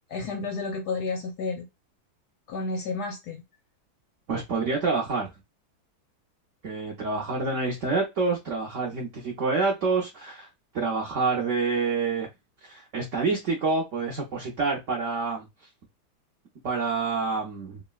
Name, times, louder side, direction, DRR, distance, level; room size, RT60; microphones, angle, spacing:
voice 1, 0.1-1.7 2.5-3.4, left 3 dB, 75° left, 0.9 m, -31 dB
voice 2, 4.3-5.3 6.6-10.5 10.7-12.3 12.6-15.5 16.6-17.8, right 4 dB, 75° right, 0.7 m, -27 dB
3.7 x 2.1 x 2.3 m
omnidirectional pair, 2.2 m